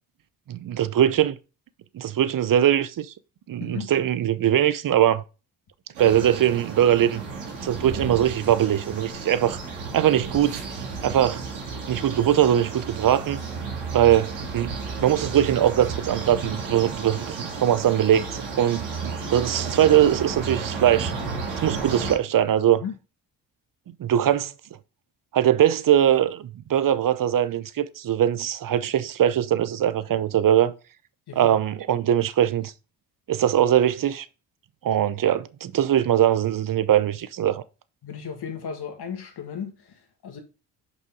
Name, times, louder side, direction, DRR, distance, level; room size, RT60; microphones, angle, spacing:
voice 1, 0.5-1.4 1.9-3.1 3.5-5.2 6.0-7.2 7.6-9.6 9.9-10.6 11.0-11.4 11.9-13.4 13.9-14.8 15.0-21.1 21.6-22.8 24.0-24.5 25.3-30.7 31.4-32.7 33.3-34.3 34.8-37.6, right 11 dB, 45° right, 0.8 m, -21 dB
voice 2, 3.6-3.9 22.8-23.0 31.3-31.6 38.0-40.4, left 7 dB, 60° left, 2.0 m, -35 dB
sound 1, 5.9-22.1, right 4 dB, 90° right, 2.3 m, -33 dB
6.4 x 5.4 x 3.9 m
supercardioid pair, 60°, 45 cm